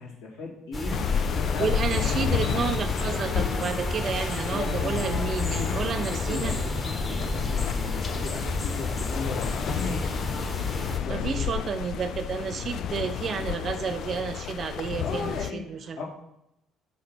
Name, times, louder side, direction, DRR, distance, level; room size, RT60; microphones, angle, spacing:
voice 1, 0.0-2.2 4.5-10.2 11.0-11.6 15.0-16.0, left 3 dB, 70° left, -4 dB, 2.1 m, -37 dB
sound 1, 0.7-11.0, left 1 dB, 30° left, 1.6 m, -31 dB
sound 2, 0.9-15.5, left 9 dB, 55° left, 0.3 m, -31 dB
voice 2, 1.6-6.6 11.1-16.0, right 6 dB, 45° right, 9 dB, 0.5 m, -31 dB
6.2 x 4.3 x 6.0 m, 0.82 s
figure-of-eight pair, 50°, 0 cm